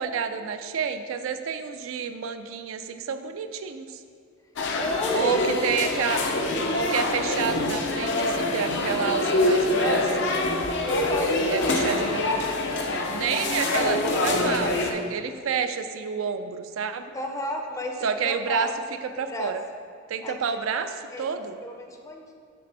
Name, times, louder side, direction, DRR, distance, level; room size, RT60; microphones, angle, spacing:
voice 1, 0.0-4.0 5.1-6.4 6.7-10.3 11.5-12.5 13.1-17.0 18.0-18.7 19.0-19.6 20.1-21.6, right 6 dB, 75° right, 8 dB, 0.4 m, -29 dB
sound 1, 4.6-14.9, left 2 dB, 60° left, 0.6 m, -25 dB
voice 2, 4.8-5.7 10.6-11.7 17.1-18.7 19.1-19.5 20.2-20.5 21.1-21.3 21.6-22.3, left 2 dB, 15° left, 3 dB, 0.5 m, -33 dB
6.8 x 3.4 x 5.3 m, 2.1 s
head